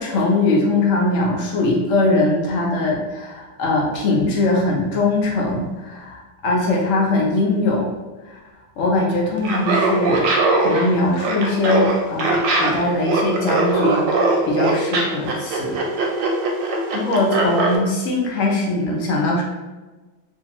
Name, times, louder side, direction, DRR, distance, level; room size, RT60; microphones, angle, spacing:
voice 1, 0.0-7.9 8.2-8.4 8.8-10.3 10.6-14.1 14.4-15.8 16.9-19.4, left 2 dB, 70° left, -2 dB, 0.7 m, -21 dB
Laughter, 9.4-17.8, right 2 dB, 90° right, 1.3 m, -20 dB
2.6 x 2.5 x 2.9 m, 1.2 s
omnidirectional pair, 1.9 m